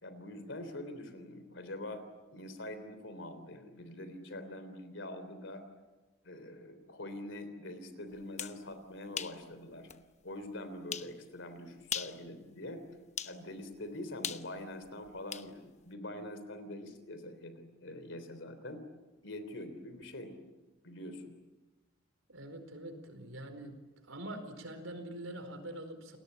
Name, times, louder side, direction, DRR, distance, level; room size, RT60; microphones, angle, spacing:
voice 1, 0.0-2.0 2.3-5.6 6.2-9.9 10.2-12.8 13.2-18.8 19.2-20.3 20.8-21.3, left 1 dB, 65° left, 10 dB, 3.4 m, -44 dB
sound 1, 8.2-8.6 9.2-9.4 9.9-10.0 10.9-11.1 11.8-12.2 13.2-13.4 14.2-15.5, left 8 dB, 35° left, 1.0 m, -38 dB
voice 2, 22.3-23.8 24.1-26.2, right 1 dB, 85° right, 8 dB, 4.6 m, -44 dB
29.5 x 20.5 x 8.7 m, 1.2 s
head